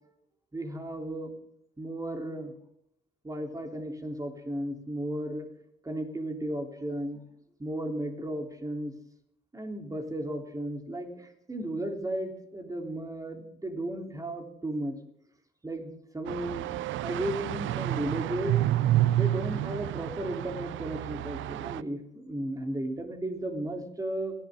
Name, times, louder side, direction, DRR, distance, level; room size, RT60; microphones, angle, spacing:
voice 1, 0.5-1.3 1.8-2.5 3.2-5.5 5.8-7.2 7.6-8.9 9.5-15.0 15.6-16.8 17.0-18.6 19.1-24.3, right 1 dB, 15° right, 4 dB, 3.4 m, -34 dB
sound 1, 16.3-21.8, right 13 dB, 75° right, 0.5 m, -29 dB
30.0 x 11.5 x 3.7 m, 0.74 s
cardioid pair, 90°, 20 cm